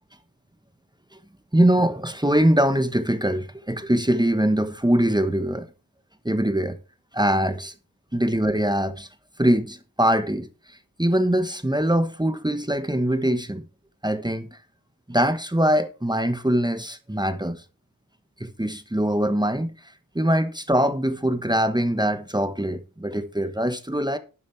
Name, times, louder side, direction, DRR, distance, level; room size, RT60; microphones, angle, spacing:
voice 1, 1.5-5.7 6.2-6.8 7.1-7.7 8.1-9.1 9.4-13.6 14.0-14.6 15.1-17.6 18.4-19.7 20.1-24.2, right 1 dB, 10° right, 1.2 m, -23 dB
12.0 x 8.4 x 3.4 m
wide cardioid pair, 55°, 36 cm